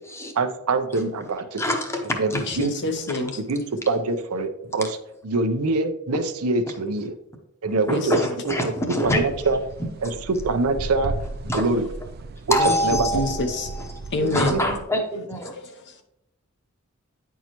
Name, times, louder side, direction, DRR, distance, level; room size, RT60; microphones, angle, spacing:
voice 1, 0.3-1.6 2.2-2.7 3.4-5.0 5.2-7.1 7.6-8.2 8.4-9.6 10.0-11.1 11.5-11.9 12.5-12.6 12.8-13.2 14.2-14.8, right 3 dB, 90° right, 7 dB, 0.6 m, -24 dB
voice 2, 1.6-2.5 7.9-9.2 11.5-11.6 12.5-13.8 14.3-15.5, equal, 10° left, 3 dB, 0.9 m, -25 dB
voice 3, 2.3-3.4 7.9-8.3 12.6-13.7 14.1-14.6 15.5-16.0, left 2 dB, 55° left, 6 dB, 0.8 m, -27 dB
sound 1, 9.0-14.8, right 3 dB, 45° right, 0.3 m, -35 dB
9.2 x 4.6 x 3.0 m, 0.85 s
head